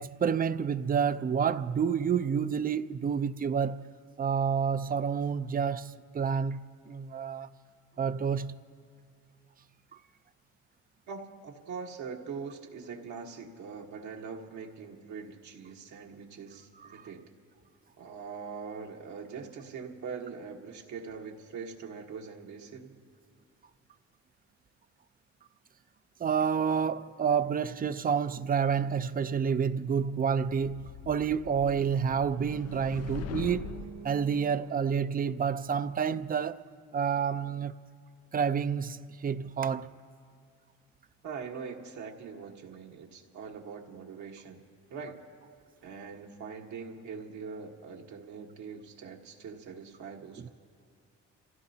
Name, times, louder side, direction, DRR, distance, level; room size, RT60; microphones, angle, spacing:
voice 1, 0.0-3.9 4.2-7.5 8.0-8.6 16.9-17.1 26.2-33.7 34.0-36.6 36.9-37.7 38.3-39.9 50.4-50.5, right 7 dB, 30° right, 0.5 m, -29 dB
voice 2, 11.1-17.2 18.0-23.0 41.2-44.6 44.9-45.2 45.8-50.5, right 5 dB, 75° right, 1.5 m, -42 dB
sound 1, 30.6-34.1, left 9 dB, 55° left, 0.4 m, -42 dB
sound 2, 32.0-36.1, right 7 dB, 60° right, 0.8 m, -49 dB
27.5 x 16.0 x 2.8 m
cardioid pair, 90°, 30 cm